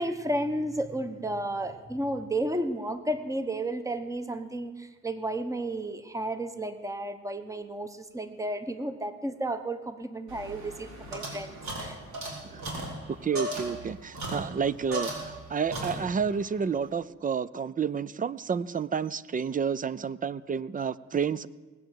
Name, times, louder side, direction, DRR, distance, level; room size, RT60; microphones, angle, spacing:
voice 1, 0.0-12.0, right 1 dB, 10° right, 10 dB, 1.1 m, -32 dB
sound 1, 10.3-15.4 15.7-16.4, right 2 dB, 65° right, 4.1 m, -36 dB
voice 2, 13.2-21.5, right 6 dB, 30° right, 19 dB, 0.4 m, -30 dB
18.5 x 7.9 x 7.5 m, 1.3 s
cardioid pair, 90°, 30 cm